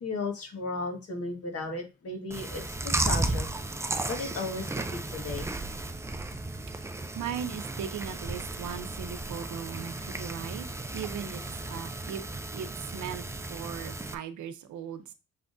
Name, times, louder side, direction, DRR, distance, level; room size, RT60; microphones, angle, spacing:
voice 1, 0.0-3.5 4.1-5.7, left 3 dB, 50° left, 4 dB, 1.6 m, -35 dB
Chewing mastication, 2.3-14.1, right 2 dB, 10° right, 0.4 m, -34 dB
voice 2, 7.1-10.7 10.9-11.4 11.7-12.2 12.5-13.2 13.5-15.0, right 8 dB, 70° right, 10 dB, 0.7 m, -38 dB
5.7 x 3.6 x 2.6 m, 0.27 s
cardioid pair, 90°, 30 cm